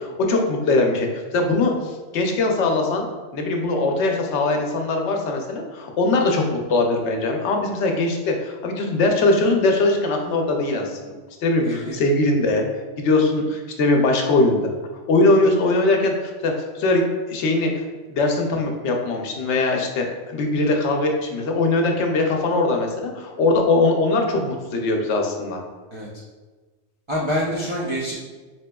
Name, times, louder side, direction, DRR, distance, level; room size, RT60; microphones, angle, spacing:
voice 1, 0.0-3.1 3.3-11.1 11.4-12.6 13.0-14.7 15.1-17.8 18.1-25.6, left 2 dB, 75° left, 2 dB, 0.9 m, -21 dB
voice 2, 11.6-12.0 25.9-26.1 27.1-28.1, equal, 50° right, -6 dB, 0.3 m, -26 dB
4.2 x 2.8 x 2.2 m, 1.3 s
omnidirectional pair, 1.2 m